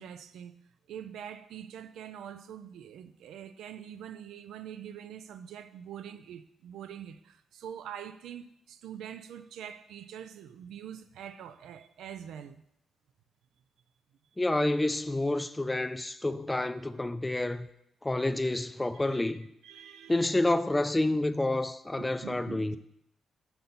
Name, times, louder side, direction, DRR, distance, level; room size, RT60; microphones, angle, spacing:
voice 1, 0.0-12.6 18.2-18.3 18.9-19.3 19.6-20.3 22.0-22.8, right 9 dB, 85° right, 0.3 m, -44 dB
voice 2, 14.4-17.7 18.0-19.5 20.1-22.8, left 2 dB, 15° left, 0.4 m, -29 dB
5.9 x 4.0 x 5.4 m
cardioid pair, 80°, 0 cm